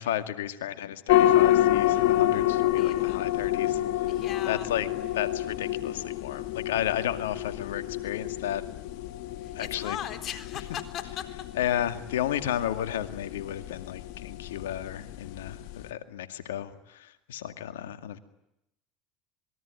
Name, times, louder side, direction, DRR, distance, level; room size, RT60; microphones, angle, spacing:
voice 1, 0.0-4.2 4.4-4.9 5.1-8.6 9.5-10.0 11.6-18.2, left 11 dB, 90° left, 10 dB, 2.2 m, -33 dB
sound 1, 1.1-15.9, left 13 dB, 75° left, 1.7 m, -28 dB
voice 2, 2.8-3.2 4.1-4.7 9.4-11.2, left 10 dB, 50° left, 9 dB, 3.9 m, -38 dB
26.5 x 22.0 x 9.8 m, 0.85 s
supercardioid pair, 90°, 0 cm